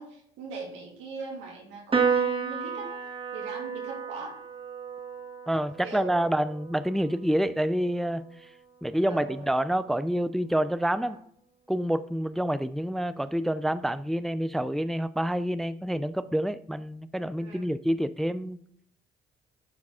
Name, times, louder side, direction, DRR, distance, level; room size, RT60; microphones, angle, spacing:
voice 1, 0.0-4.4 5.8-6.3 9.1-9.5 11.1-11.2 17.4-17.7, right 4 dB, 90° right, 2.6 m, -40 dB
Piano, 1.9-8.6, right 6 dB, 30° right, 1.4 m, -32 dB
voice 2, 5.5-8.5 8.8-11.2 11.7-18.6, right 1 dB, ahead, 0.4 m, -28 dB
10.5 x 4.7 x 3.6 m
supercardioid pair, 65°, 19 cm